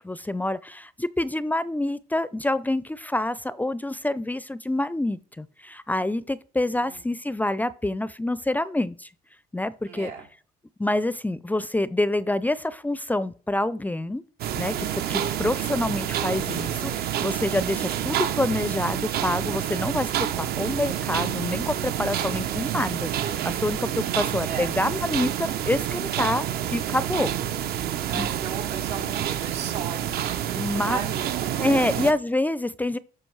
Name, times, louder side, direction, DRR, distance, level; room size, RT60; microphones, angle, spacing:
voice 1, 0.0-9.1 9.5-10.1 10.8-14.2 14.6-26.5 26.7-27.3 28.1-28.3 30.5-31.0 31.6-33.0, left 1 dB, 10° left, 0.4 m, -27 dB
voice 2, 6.6-7.1 9.8-10.3 23.9-24.7 28.1-30.4 30.8-31.4 31.7-32.1, right 7 dB, 90° right, 3.1 m, -37 dB
sound 1, 14.4-32.1, right 10 dB, 65° right, 0.8 m, -28 dB
13.5 x 5.1 x 4.7 m
cardioid pair, 110°, 17 cm